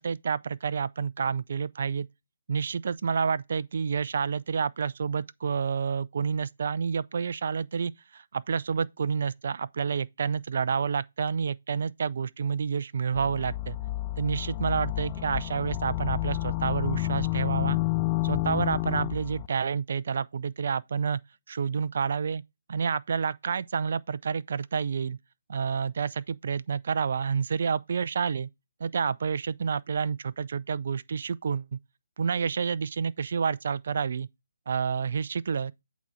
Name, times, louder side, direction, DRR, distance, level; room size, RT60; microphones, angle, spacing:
voice 1, 0.0-2.1 2.5-13.8 14.2-17.8 18.2-21.2 21.5-22.4 22.7-25.2 25.5-28.5 28.8-31.8 32.2-34.3 34.7-35.7, right 6 dB, 55° right, 0.5 m, -29 dB
sound 1, 13.2-19.5, left 17 dB, 25° left, 0.5 m, -30 dB
8.3 x 4.1 x 4.7 m
figure-of-eight pair, 145°, 0 cm